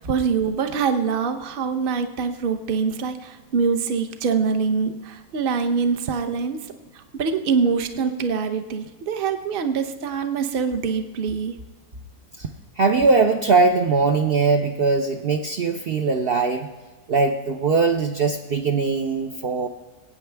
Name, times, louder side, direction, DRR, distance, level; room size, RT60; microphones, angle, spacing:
voice 1, 0.0-6.6 6.9-11.6, right 5 dB, 40° right, 8 dB, 0.8 m, -24 dB
voice 2, 12.8-16.7 17.1-19.7, right 4 dB, 75° right, 4 dB, 0.5 m, -20 dB
22.5 x 8.9 x 3.4 m, 1.3 s
omnidirectional pair, 1.8 m